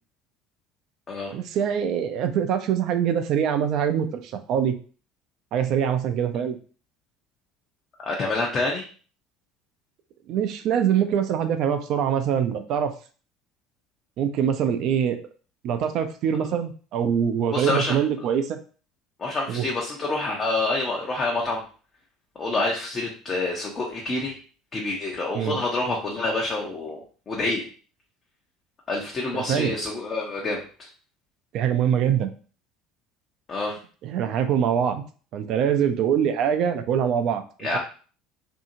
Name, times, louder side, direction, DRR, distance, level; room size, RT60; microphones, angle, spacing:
voice 1, 1.3-4.8 5.5-6.6 10.3-12.9 14.2-15.2 15.6-18.6 19.5-19.7 25.3-25.6 29.3-29.7 31.5-32.3 34.0-35.0 35.3-37.8, right 8 dB, 55° right, 8 dB, 0.4 m, -24 dB
voice 2, 8.0-8.8 17.5-18.0 19.2-21.6 22.4-24.4 24.7-27.0 27.3-27.7 28.9-30.9 33.5-33.8 37.6-37.8, left 2 dB, 35° left, -2 dB, 0.7 m, -27 dB
2.7 x 2.7 x 2.6 m, 0.39 s
hypercardioid pair, 65°, 0 cm